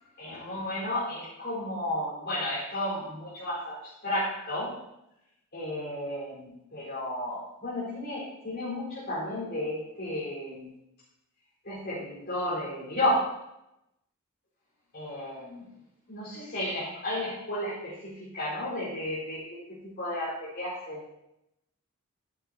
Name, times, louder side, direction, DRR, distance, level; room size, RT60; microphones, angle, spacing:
voice 1, 0.2-4.7 5.5-10.7 11.6-13.3 14.9-15.7 16.1-19.6 20.0-21.0, left 1 dB, 50° left, -10 dB, 4.6 m, -33 dB
13.5 x 10.5 x 2.9 m, 0.88 s
head